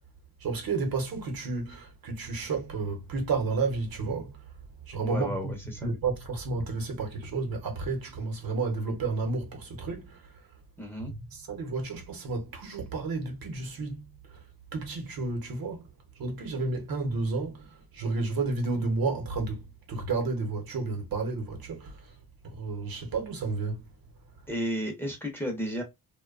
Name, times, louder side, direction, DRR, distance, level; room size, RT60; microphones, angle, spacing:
voice 1, 0.4-4.3 4.9-5.5 5.8-10.2 11.1-14.0 14.7-15.8 16.2-17.7 17.9-21.9 22.4-23.8, right 3 dB, 70° right, 0.9 m, -31 dB
voice 2, 5.0-5.9 10.8-11.1 24.5-25.8, equal, 5° left, 0.6 m, -33 dB
2.7 x 2.2 x 2.4 m
wide cardioid pair, 125°, 37 cm